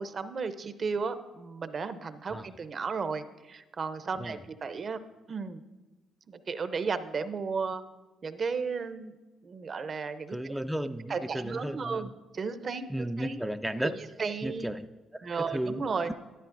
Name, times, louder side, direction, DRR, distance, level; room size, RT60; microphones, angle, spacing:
voice 1, 0.0-5.0 5.3-5.6 6.3-7.8 8.2-9.2 9.4-10.5 11.1-13.4 14.2-14.7 15.2-16.1, right 5 dB, 50° right, 10 dB, 0.6 m, -34 dB
voice 2, 10.3-12.1 12.9-13.9 14.4-14.9 15.1-16.1, right 1 dB, 5° right, 7 dB, 0.4 m, -34 dB
12.5 x 10.0 x 2.6 m, 1.2 s
supercardioid pair, 65°, 0 cm